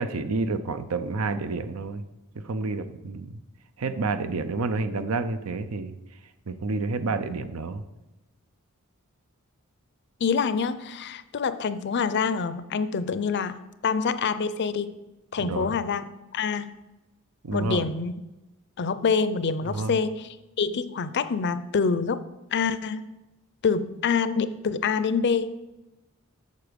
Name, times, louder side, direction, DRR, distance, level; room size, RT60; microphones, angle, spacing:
voice 1, 0.0-2.0 2.4-3.3 3.8-6.0 6.5-7.8 15.4-15.7 17.4-17.8 19.7-19.9, right 3 dB, 90° right, 11 dB, 0.6 m, -29 dB
voice 2, 10.2-14.9 15.3-16.0 16.3-16.8 17.5-18.1 18.8-22.2 22.5-23.1 23.6-25.5, left 5 dB, 55° left, 14 dB, 0.5 m, -26 dB
8.4 x 6.9 x 5.1 m, 1.0 s
head